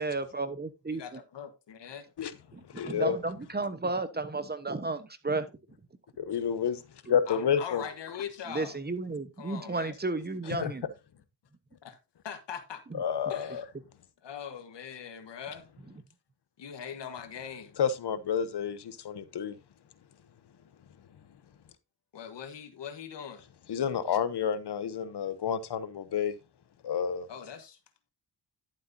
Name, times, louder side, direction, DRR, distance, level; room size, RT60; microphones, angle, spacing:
voice 1, 0.0-1.2 2.5-5.5 8.5-10.8 12.9-13.0, right 3 dB, 25° right, 1.0 m, -33 dB
voice 2, 0.9-2.0 7.3-8.8 9.4-10.0 11.8-12.0 12.2-12.8 13.3-13.6 14.2-15.7 16.6-17.8 22.1-23.4 27.3-27.8, left 8 dB, 85° left, 1.5 m, -41 dB
voice 3, 2.7-3.2 6.2-6.8 7.1-7.8 10.5-10.7 12.9-13.6 17.8-19.6 23.7-26.3 26.8-27.3, left 7 dB, 70° left, 0.9 m, -29 dB
11.5 x 7.5 x 2.7 m
cardioid pair, 85°, 41 cm